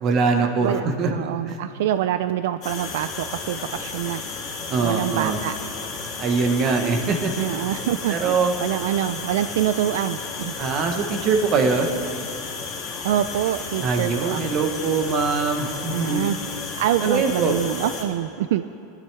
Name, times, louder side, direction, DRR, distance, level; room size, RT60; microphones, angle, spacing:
voice 1, 0.0-1.1 1.5-1.6 4.7-5.4 6.2-7.7 8.1-8.5 10.6-11.9 13.8-16.3 17.1-17.6, right 4 dB, 30° right, 5 dB, 0.9 m, -22 dB
voice 2, 0.5-4.2 4.8-5.6 7.4-10.5 13.0-14.7 15.9-16.4 16.8-18.6, right 11 dB, 65° right, 11 dB, 0.3 m, -25 dB
sound 1, 2.6-18.0, left 4 dB, 30° left, 2.2 m, -33 dB
21.0 x 11.5 x 3.3 m, 2.7 s
supercardioid pair, 180°, 0 cm